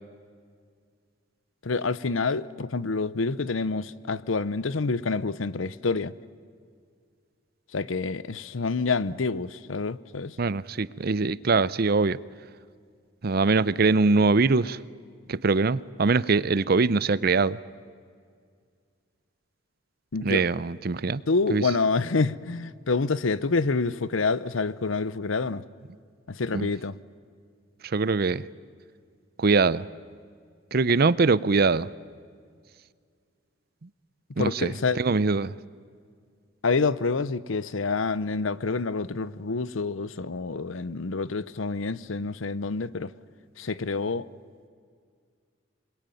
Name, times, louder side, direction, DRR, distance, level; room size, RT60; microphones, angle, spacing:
voice 1, 1.6-6.1 7.7-10.4 20.1-20.5 21.3-25.6 26.3-27.0 34.4-35.0 36.6-43.1 43.6-44.3, left 4 dB, 85° left, 0.8 m, -27 dB
voice 2, 10.4-12.2 13.2-14.8 15.3-17.6 20.2-21.2 21.5-21.6 26.5-26.7 27.9-28.4 29.4-29.8 30.7-31.9 34.4-35.5, right 4 dB, 50° right, 0.6 m, -23 dB
26.5 x 21.5 x 9.2 m
head